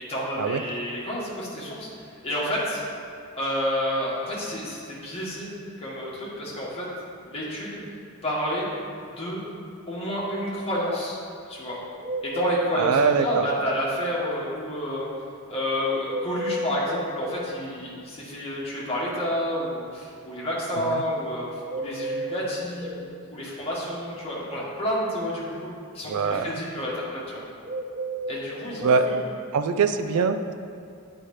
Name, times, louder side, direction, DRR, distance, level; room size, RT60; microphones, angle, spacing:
voice 1, 0.1-2.8 3.3-6.8 7.2-7.8 8.2-8.7 9.2-9.4 9.9-11.2 11.5-11.8 12.2-15.1 15.5-21.5 21.7-27.4 28.2-29.2, equal, 25° left, -7 dB, 1.5 m, -30 dB
sound 1, 12.0-13.4 16.0-17.4 21.7-23.1 27.6-29.0, right 1 dB, 25° right, 0.6 m, -31 dB
voice 2, 12.7-13.4 26.1-26.5 28.8-29.1 29.5-30.5, right 5 dB, 80° right, 9 dB, 0.4 m, -22 dB
9.0 x 4.3 x 3.2 m, 2.3 s
head